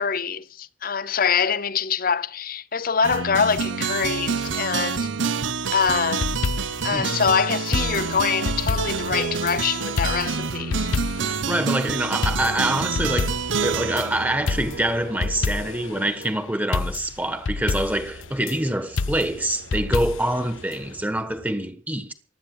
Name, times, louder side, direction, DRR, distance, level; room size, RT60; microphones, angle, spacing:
voice 1, 0.0-5.1 5.7-6.3 6.8-11.0, left 6 dB, 45° left, 0.7 m, -24 dB
sound 1, 3.0-15.3, right 5 dB, 70° right, 0.8 m, -28 dB
sound 2, 4.2-5.1 6.9-9.5 10.4-11.7 12.4-16.4 17.8-21.5, right 2 dB, 85° right, 6.1 m, -43 dB
sound 3, 5.9-6.9 7.7-9.6 10.0-11.4 11.7-11.8 12.2-14.1 14.5-15.9 16.2-16.3 16.7-18.5 19.0-20.4 20.7-20.8, left 3 dB, 80° left, 0.7 m, -28 dB
voice 2, 11.2-13.3 13.6-22.1, right 1 dB, 10° right, 1.3 m, -25 dB
16.0 x 11.5 x 6.1 m
head